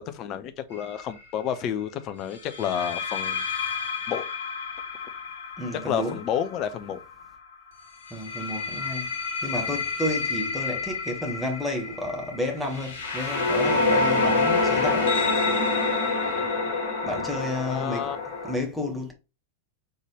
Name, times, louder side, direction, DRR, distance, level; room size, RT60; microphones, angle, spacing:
voice 1, 0.0-3.4 3.7-3.8 4.1-4.2 5.7-7.0 16.3-16.7 17.7-18.2, left 9 dB, 35° left, 0.7 m, -31 dB
sound 1, 0.7-1.0 2.5-7.3 8.1-18.5, left 3 dB, 60° left, 1.5 m, -27 dB
voice 2, 5.6-6.2 8.1-9.1 9.4-15.2 17.0-18.1 18.4-19.1, left 1 dB, ahead, 1.4 m, -31 dB
4.0 x 3.8 x 3.1 m
figure-of-eight pair, 90°, 0 cm